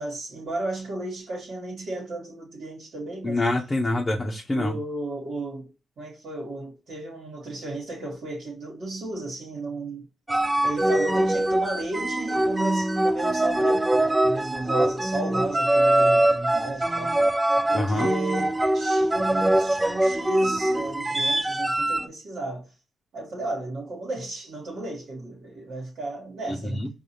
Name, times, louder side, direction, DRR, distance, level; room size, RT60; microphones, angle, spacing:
voice 1, 0.0-3.4 4.5-5.7 6.0-10.0 10.6-17.1 17.7-22.7 23.1-26.8, right 2 dB, 70° right, 1.4 m, -34 dB
voice 2, 3.2-4.7 17.7-18.1 26.5-26.9, left 2 dB, 25° left, 0.7 m, -26 dB
sound 1, 10.3-22.1, right 1 dB, 15° right, 0.3 m, -23 dB
4.7 x 2.3 x 2.8 m
supercardioid pair, 60°, 0 cm